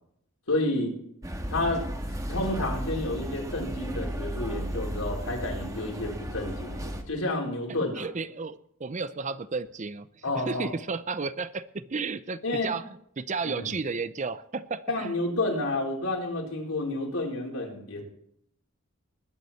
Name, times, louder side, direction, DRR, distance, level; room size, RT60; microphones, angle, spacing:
voice 1, 0.5-0.9 1.5-1.9 2.3-8.1 10.2-10.7 12.4-12.7 13.4-13.7 14.9-18.0, left 2 dB, 75° left, -1 dB, 4.4 m, -30 dB
sound 1, 1.2-7.0, equal, 15° right, 1.5 m, -34 dB
voice 2, 7.7-10.1 10.4-15.2, right 4 dB, 35° right, 14 dB, 0.6 m, -33 dB
20.5 x 9.5 x 4.4 m, 0.70 s
head